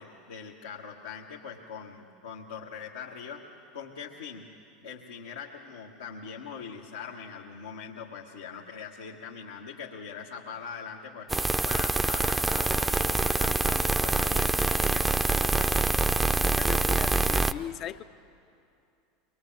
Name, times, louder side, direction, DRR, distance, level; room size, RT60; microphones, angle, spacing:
voice 1, 0.0-3.5 3.7-4.5 4.8-11.3 11.7-15.7, left 6 dB, 85° left, -4 dB, 1.5 m, -42 dB
sound 1, 11.3-17.5, right 2 dB, 10° right, 0.6 m, -25 dB
voice 2, 16.2-18.0, left 10 dB, 45° left, 13 dB, 0.6 m, -38 dB
23.5 x 21.0 x 7.7 m, 2.6 s
hypercardioid pair, 85°, 0 cm